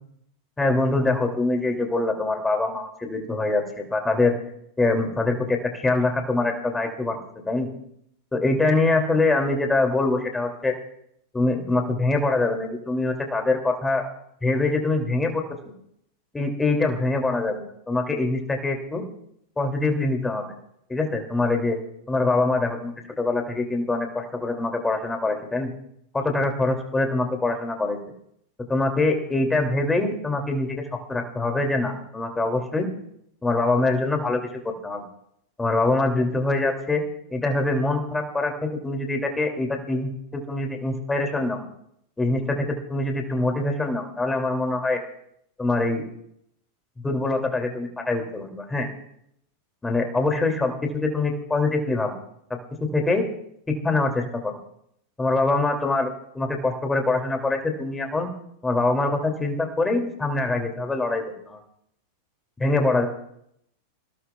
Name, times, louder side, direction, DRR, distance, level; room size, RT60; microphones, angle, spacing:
voice 1, 0.6-4.3 4.8-7.2 7.5-7.7 8.3-10.7 11.3-14.0 14.4-15.4 16.3-19.0 19.6-20.5 20.9-21.8 22.1-25.7 26.1-28.0 28.7-32.9 33.4-35.0 35.6-37.0 37.3-41.6 42.2-45.0 45.6-46.0 47.0-48.9 49.8-52.2 52.8-53.2 53.7-54.6 55.2-56.1 56.3-58.3 58.6-61.6 62.6-63.1, left 2 dB, 10° left, 4 dB, 2.7 m, -24 dB
28.0 x 17.0 x 2.4 m, 0.74 s
figure-of-eight pair, 90°, 0 cm